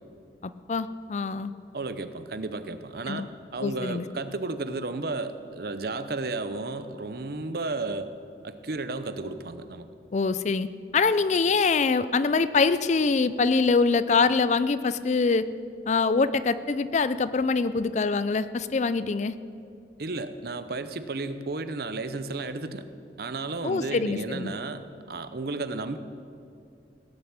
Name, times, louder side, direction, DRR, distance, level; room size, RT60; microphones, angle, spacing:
voice 1, 0.4-1.5 3.1-3.3 3.6-4.1 10.1-10.7 10.9-15.5 15.9-19.3 23.6-24.5, left 4 dB, 40° left, 15 dB, 0.4 m, -24 dB
voice 2, 1.7-3.3 3.5-8.1 8.4-9.9 20.0-22.9 23.2-24.8 25.1-26.0, right 3 dB, 55° right, 11 dB, 0.8 m, -33 dB
17.0 x 7.0 x 8.8 m, 2.4 s
head